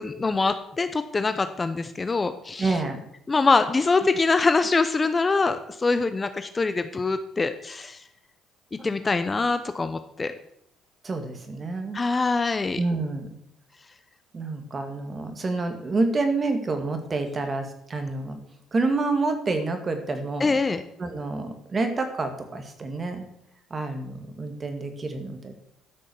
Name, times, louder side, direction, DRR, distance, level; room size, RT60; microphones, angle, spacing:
voice 1, 0.0-2.7 3.3-8.0 8.8-10.3 11.9-12.8 20.4-20.8, left 3 dB, 25° left, 10 dB, 0.8 m, -24 dB
voice 2, 2.6-3.0 11.0-12.0 12.8-13.3 14.3-18.4 18.7-20.6 21.0-23.3 23.7-25.5, right 3 dB, 30° right, 6 dB, 2.2 m, -28 dB
12.5 x 6.3 x 7.1 m, 0.74 s
cardioid pair, 115°, 0 cm